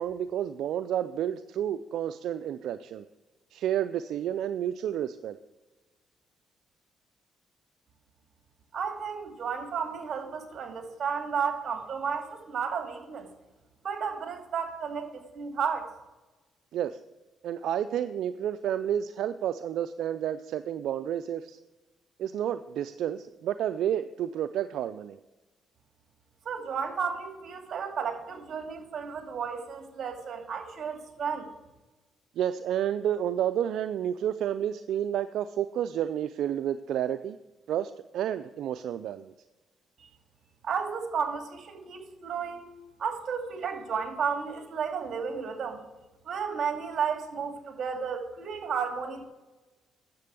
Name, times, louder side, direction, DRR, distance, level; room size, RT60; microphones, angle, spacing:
voice 1, 0.0-3.0 3.5-5.4 16.7-17.0 17.4-21.6 22.2-25.2 32.4-37.4 37.7-39.3, right 10 dB, 80° right, 10 dB, 0.4 m, -30 dB
voice 2, 8.7-13.3 13.8-15.9 26.4-31.5 40.6-42.7 43.0-45.8 46.3-49.2, right 6 dB, 50° right, 4 dB, 2.4 m, -33 dB
10.5 x 7.5 x 6.9 m, 1.1 s
cardioid pair, 90°, 0 cm